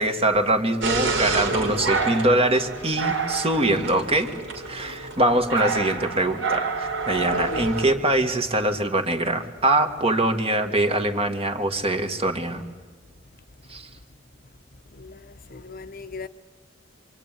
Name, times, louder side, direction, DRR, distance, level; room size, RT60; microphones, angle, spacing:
voice 1, 0.0-4.3 4.7-12.6 13.7-13.9, right 1 dB, 30° right, 1.8 m, -23 dB
sound 1, 0.8-7.9, right 4 dB, 85° right, 3.2 m, -28 dB
voice 2, 4.7-5.1 7.3-7.7 14.9-16.3, left 3 dB, 50° left, 0.9 m, -37 dB
26.5 x 24.5 x 9.1 m
head